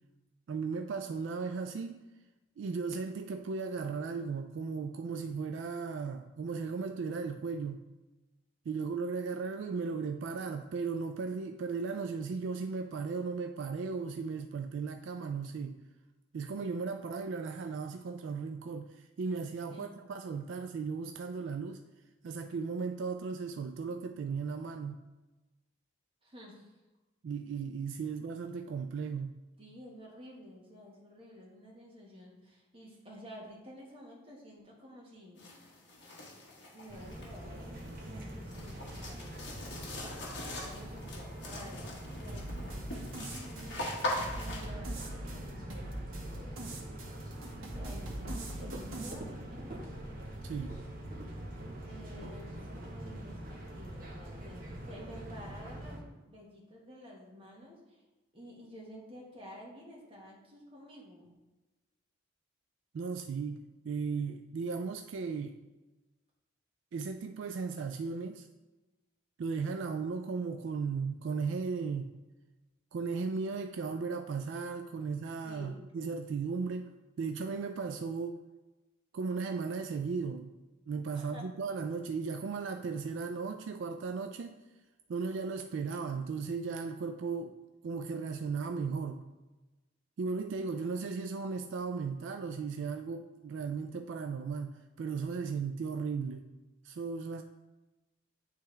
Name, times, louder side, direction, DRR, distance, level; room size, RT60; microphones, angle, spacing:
voice 1, 0.5-2.0 2.6-7.8 8.7-15.8 16.3-21.8 22.2-25.0 27.2-29.4 50.4-50.8 62.9-65.6 66.9-68.5 69.4-72.1 72.9-78.4 79.1-80.5 80.9-84.6 85.1-87.6 87.8-89.2 90.2-96.5 96.8-97.4, right 5 dB, 65° right, 6 dB, 0.3 m, -36 dB
voice 2, 26.2-26.7 29.6-35.7 36.7-39.5 40.6-44.0 44.3-46.8 47.7-49.9 51.9-58.0 58.3-61.3 75.4-75.8 81.1-81.5, equal, 25° right, -3 dB, 1.4 m, -51 dB
sound 1, 35.4-44.6, left 1 dB, 60° left, 1.5 m, -41 dB
sound 2, 36.9-56.0, right 1 dB, 45° right, 1.1 m, -44 dB
sound 3, 42.3-49.1, right 1 dB, 90° right, 1.2 m, -43 dB
10.0 x 3.4 x 3.3 m, 1.1 s
head